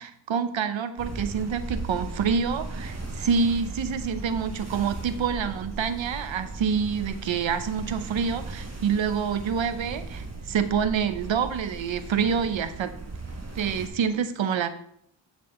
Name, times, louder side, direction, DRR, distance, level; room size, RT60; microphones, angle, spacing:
voice 1, 0.0-12.9 13.6-14.7, right 6 dB, 75° right, 12 dB, 0.8 m, -27 dB
sound 1, 1.0-13.9, right 3 dB, 35° right, 1.7 m, -37 dB
9.7 x 6.0 x 4.3 m, 0.68 s
wide cardioid pair, 75°, 46 cm